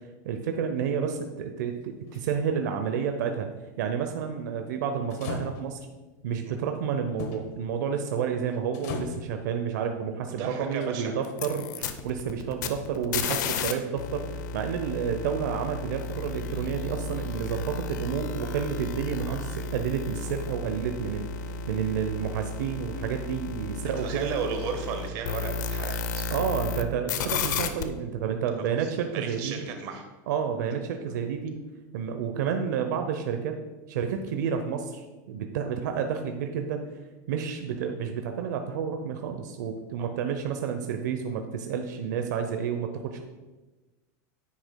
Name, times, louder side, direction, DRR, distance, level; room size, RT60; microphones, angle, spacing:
voice 1, 0.2-3.5 3.8-5.8 6.2-19.4 19.7-21.3 21.7-24.3 26.3-29.6 30.3-31.6 31.9-33.5 33.9-36.8 37.3-43.2, right 7 dB, 85° right, 6 dB, 0.7 m, -30 dB
sound 1, 1.8-2.2 5.1-5.9 7.2-7.5 7.9-8.2 8.5-9.3 10.7-11.2 12.2-12.3, left 5 dB, 60° left, 1.1 m, -38 dB
voice 2, 10.2-11.2 11.7-11.9 19.3-19.4 24.0-26.2 28.7-30.0 40.0-40.1, right 6 dB, 50° right, 4 dB, 1.3 m, -35 dB
sound 2, 11.2-13.7 14.0-26.8 27.1-27.8, left 4 dB, 85° left, 0.7 m, -33 dB
9.9 x 8.0 x 2.2 m, 1.2 s
supercardioid pair, 160°, 10 cm